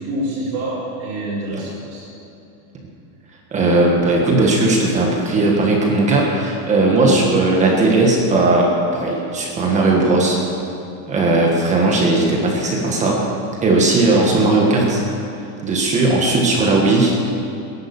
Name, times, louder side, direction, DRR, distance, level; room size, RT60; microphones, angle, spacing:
voice 1, 0.0-2.1 6.9-7.4 16.0-16.3, right 1 dB, 40° right, -11 dB, 5.0 m, -27 dB
voice 2, 3.5-10.4 11.1-13.2 13.6-15.0 15.6-17.2, right 2 dB, 15° right, -1 dB, 1.5 m, -17 dB
18.0 x 11.0 x 7.0 m, 2.7 s
supercardioid pair, 180°, 47 cm